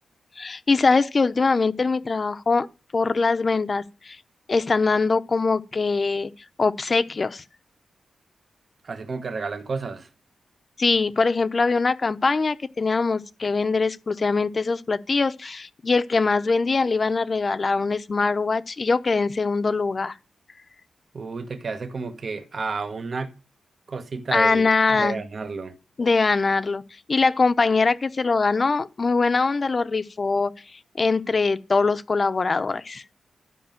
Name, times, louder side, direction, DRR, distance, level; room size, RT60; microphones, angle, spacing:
voice 1, 0.4-2.7 2.9-4.2 4.5-6.3 6.6-7.4 10.8-20.1 24.3-25.2 26.0-26.8 27.1-30.5 31.0-33.0, left 4 dB, 35° left, 0.8 m, -22 dB
voice 2, 8.8-10.1 21.1-23.3 23.9-25.8, right 4 dB, 45° right, 1.3 m, -31 dB
13.0 x 5.4 x 9.0 m
wide cardioid pair, 110°, 0 cm